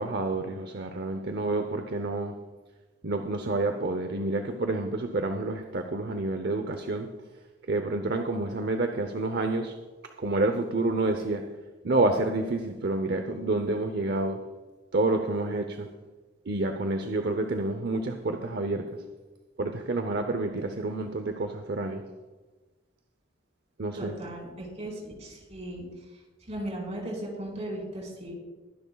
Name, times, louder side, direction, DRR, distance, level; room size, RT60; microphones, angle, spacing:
voice 1, 0.0-2.3 3.0-7.1 7.7-9.7 10.2-11.4 11.8-14.4 14.9-15.9 16.5-18.8 19.6-22.0 23.8-24.1, right 2 dB, 55° right, 6 dB, 0.8 m, -28 dB
voice 2, 23.9-25.9 26.5-28.4, right 1 dB, 35° right, -3 dB, 4.4 m, -37 dB
22.0 x 10.5 x 2.4 m, 1.3 s
head